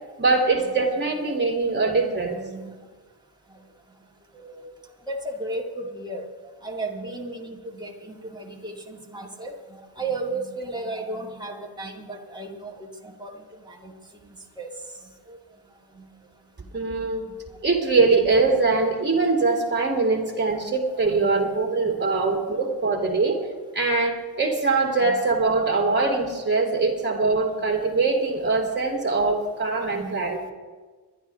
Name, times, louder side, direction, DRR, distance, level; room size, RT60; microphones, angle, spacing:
voice 1, 0.2-2.4 16.7-17.3 17.6-23.4 23.7-30.4, right 3 dB, 25° right, 0 dB, 3.2 m, -22 dB
voice 2, 2.1-2.7 4.3-4.7 5.1-6.3 6.6-9.5 10.0-13.9 14.2-14.7 15.3-15.4 16.0-16.1 20.4-20.5 20.8-22.3 25.0-25.2 25.8-25.9 28.5-28.7 29.8-30.2, right 2 dB, 10° right, -1 dB, 2.2 m, -35 dB
26.0 x 11.5 x 3.6 m, 1.4 s
wide cardioid pair, 120°, 40 cm